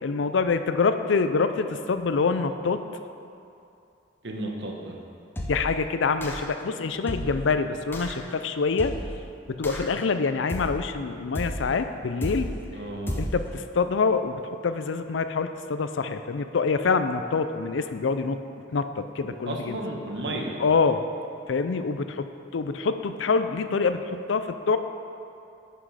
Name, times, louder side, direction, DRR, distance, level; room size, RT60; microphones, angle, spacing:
voice 1, 0.0-2.8 5.5-8.9 9.5-12.5 13.2-18.4 18.7-19.8 20.6-21.0 21.5-22.3 22.5-24.8, left 4 dB, 85° left, 9 dB, 0.5 m, -25 dB
voice 2, 4.2-4.9 12.7-13.2 19.3-20.6, right 1 dB, 65° right, 0 dB, 1.1 m, -33 dB
sound 1, 5.4-5.8 6.2-6.6 7.1-7.5 7.9-8.2 8.8-9.2 9.6-10.0 10.5-10.9 11.4-11.8 12.2-12.6 13.1-13.5, equal, 10° left, 0.7 m, -33 dB
10.0 x 6.1 x 4.9 m, 2.6 s
head